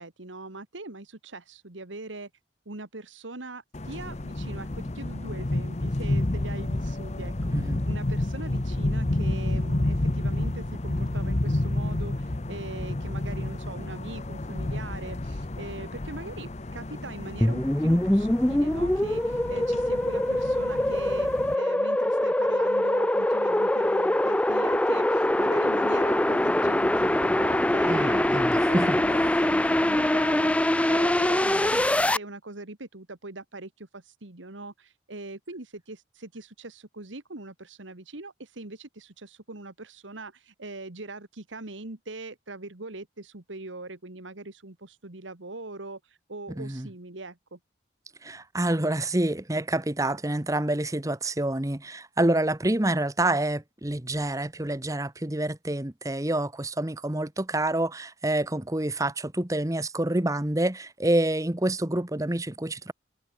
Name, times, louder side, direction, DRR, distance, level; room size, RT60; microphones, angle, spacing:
voice 1, 0.0-2.3 2.7-21.3 21.5-31.9 32.1-47.6, right 2 dB, 90° right, 2.1 m, -41 dB
sound 1, 3.7-21.5, left 1 dB, 35° left, 0.9 m, -30 dB
voice 2, 7.5-7.8 27.9-29.0 46.6-46.9 48.2-62.9, right 1 dB, 20° right, 1.0 m, -27 dB
sound 2, 17.4-32.2, left 1 dB, 5° left, 0.4 m, -23 dB
head